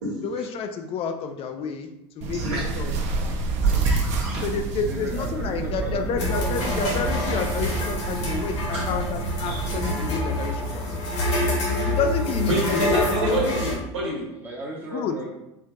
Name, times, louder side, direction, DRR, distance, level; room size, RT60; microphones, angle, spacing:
voice 1, 0.2-3.4 4.4-10.9 11.5-13.2 14.9-15.2, left 5 dB, 40° left, 7 dB, 0.4 m, -30 dB
sound 1, 2.2-9.9, right 4 dB, 50° right, 0.6 m, -28 dB
voice 2, 2.3-2.9 3.6-4.5 8.7-8.8 9.5-9.6 12.5-14.3, right 1 dB, 90° right, -4 dB, 1.5 m, -28 dB
voice 3, 4.8-6.6 10.8-11.0 14.3-15.3, right 1 dB, 15° right, -3 dB, 0.9 m, -37 dB
sound 2, 6.2-13.8, left 1 dB, 90° left, 1.1 m, -26 dB
4.5 x 2.5 x 2.2 m, 0.89 s
supercardioid pair, 100°, 14 cm